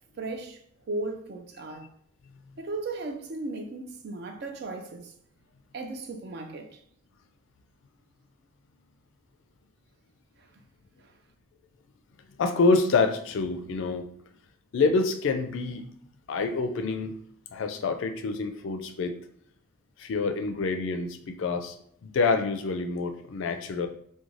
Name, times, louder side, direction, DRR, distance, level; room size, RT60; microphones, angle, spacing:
voice 1, 0.2-0.6 0.9-1.9 2.6-5.1 5.7-6.7, right 2 dB, 50° right, 0.4 m, -36 dB
voice 2, 12.4-14.1 14.7-15.9 16.3-17.1 17.5-19.2 20.0-21.7 22.0-23.9, left 4 dB, 65° left, 0.3 m, -27 dB
2.5 x 2.2 x 3.0 m
head